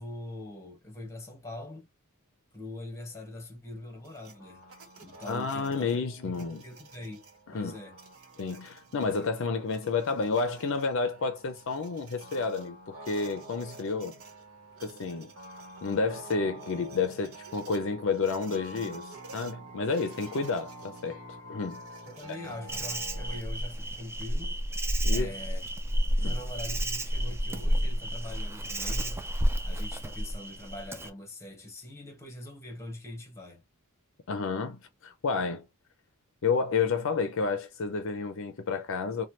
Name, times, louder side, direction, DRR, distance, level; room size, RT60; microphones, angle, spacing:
voice 1, 0.0-1.9 2.5-4.6 5.0-5.9 6.2-6.4 6.6-7.3 7.5-8.0 22.1-24.6 25.1-25.6 26.2-29.2 29.6-33.6, left 1 dB, 15° left, 1.1 m, -43 dB
sound 1, 4.0-23.4, right 2 dB, 70° right, 1.1 m, -48 dB
voice 2, 5.3-6.6 7.5-7.8 8.4-14.1 14.8-15.3 15.8-19.0 19.3-21.2 21.5-21.8 25.0-25.3 26.2-26.3 34.3-35.6 36.4-39.2, left 4 dB, 60° left, 0.5 m, -30 dB
Insect, 22.7-31.1, equal, 10° right, 0.3 m, -30 dB
3.1 x 2.2 x 2.8 m
head